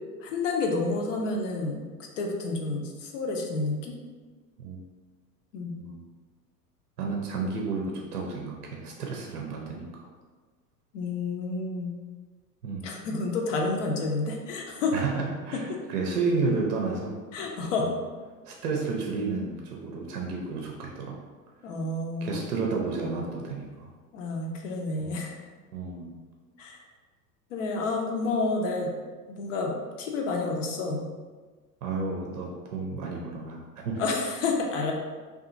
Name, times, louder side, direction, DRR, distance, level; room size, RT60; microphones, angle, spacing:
voice 1, 0.2-1.8 2.2-3.9 5.5-5.8 10.9-11.9 12.8-15.0 17.3-17.9 21.6-22.5 24.1-25.4 26.6-26.8 27.5-28.9 29.3-31.0 34.0-34.9, left 3 dB, 50° left, 1 dB, 0.6 m, -29 dB
voice 2, 7.0-9.9 12.6-12.9 14.9-17.2 17.5-17.6 17.8-17.9 18.4-21.2 22.2-23.9 25.0-25.2 25.7-26.1 31.8-33.6 33.8-34.0, right 4 dB, 70° right, 0 dB, 0.6 m, -31 dB
2.7 x 2.4 x 2.5 m, 1.4 s
figure-of-eight pair, 85°, 48 cm